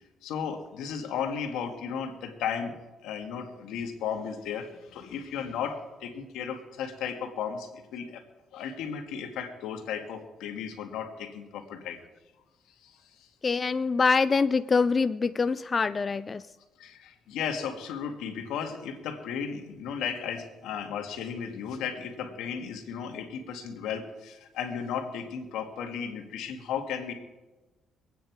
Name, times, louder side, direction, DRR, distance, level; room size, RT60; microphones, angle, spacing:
voice 1, 0.2-2.8 3.0-8.2 8.5-12.0 12.8-13.0 16.8-27.1, left 7 dB, 90° left, 5 dB, 1.9 m, -35 dB
voice 2, 13.4-16.4, left 4 dB, 35° left, 14 dB, 0.4 m, -25 dB
23.5 x 9.1 x 4.7 m, 1.1 s
cardioid pair, 90°, 0 cm